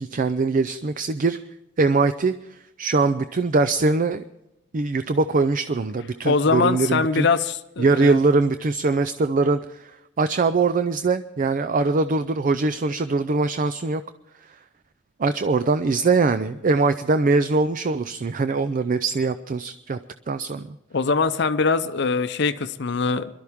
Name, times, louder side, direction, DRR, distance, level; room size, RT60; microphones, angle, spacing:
voice 1, 0.0-1.4 1.8-4.2 4.7-7.3 7.8-9.9 10.2-14.0 15.2-20.0 20.3-20.8, right 3 dB, 45° right, 11 dB, 0.4 m, -22 dB
voice 2, 6.2-8.2 20.9-23.3, left 4 dB, 65° left, 11 dB, 0.6 m, -22 dB
22.5 x 12.5 x 3.6 m, 0.92 s
head